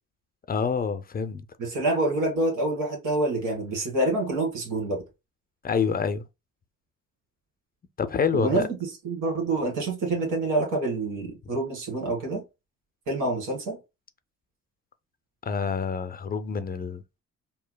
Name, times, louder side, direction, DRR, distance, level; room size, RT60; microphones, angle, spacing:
voice 1, 0.5-1.4 5.6-6.2 8.0-8.6 11.4-11.5 15.5-17.2, left 6 dB, 30° left, 0.4 m, -27 dB
voice 2, 1.6-5.0 8.3-8.7 9.0-12.4 13.1-13.8, right 2 dB, 85° right, 1.9 m, -27 dB
4.6 x 2.7 x 2.2 m
cardioid pair, 90°, 30 cm